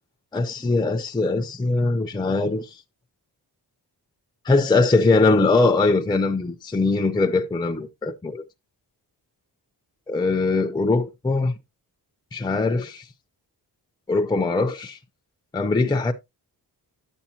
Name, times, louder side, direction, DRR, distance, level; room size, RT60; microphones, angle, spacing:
voice 1, 0.3-2.7 4.5-8.4 10.1-11.5 12.3-13.0 14.1-15.0 15.5-16.1, left 3 dB, 10° left, 0.5 m, -21 dB
10.5 x 7.3 x 2.7 m
wide cardioid pair, 160°, 42 cm